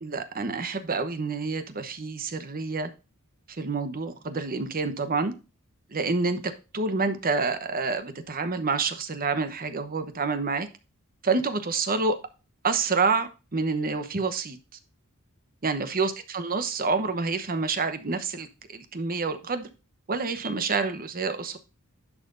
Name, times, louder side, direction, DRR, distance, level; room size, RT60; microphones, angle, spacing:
voice 1, 0.0-2.9 3.6-5.3 5.9-10.7 11.2-12.2 12.6-14.6 15.6-19.7 20.1-21.6, right 4 dB, 40° right, 1.0 m, -28 dB
11.0 x 5.8 x 2.6 m
head